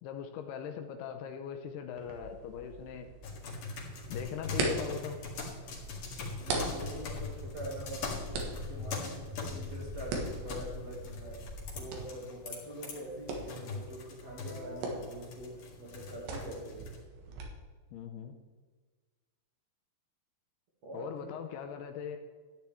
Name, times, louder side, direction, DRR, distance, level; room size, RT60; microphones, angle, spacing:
voice 1, 0.0-3.1 4.1-5.2 17.9-18.3 20.9-22.2, left 8 dB, 80° left, 5 dB, 2.6 m, -40 dB
sound 1, 1.9-17.4, right 3 dB, 85° right, 3.8 m, -41 dB
sound 2, 3.2-17.0, left 3 dB, 55° left, 3.4 m, -43 dB
Walk footsteps, 4.3-11.8, left 3 dB, 15° left, 1.4 m, -44 dB
voice 2, 6.4-11.4 11.8-16.8 20.8-21.5, right 1 dB, 45° right, -3 dB, 2.6 m, -44 dB
13.5 x 9.7 x 3.5 m, 1.4 s
omnidirectional pair, 5.0 m